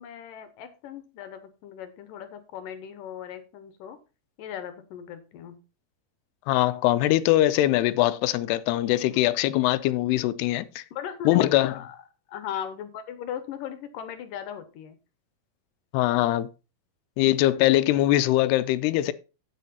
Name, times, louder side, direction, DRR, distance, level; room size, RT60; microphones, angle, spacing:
voice 1, 0.0-4.0 4.4-5.6 9.1-9.2 10.9-12.0 12.3-15.0, left 9 dB, 70° left, 2.3 m, -38 dB
voice 2, 6.5-10.8 11.3-11.7 15.9-16.5 17.2-19.1, left 15 dB, 90° left, 2.7 m, -22 dB
9.0 x 8.4 x 4.2 m
omnidirectional pair, 4.6 m